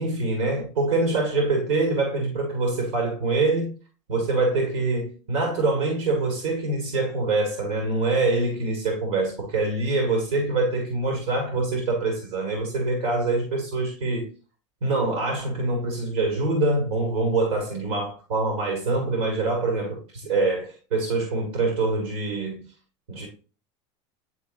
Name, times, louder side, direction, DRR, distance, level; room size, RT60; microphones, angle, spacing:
voice 1, 0.0-3.8 4.1-14.3 14.8-22.6 23.1-23.3, right 3 dB, 85° right, 2.0 m, -25 dB
9.9 x 3.8 x 2.6 m
supercardioid pair, 130°, 15 cm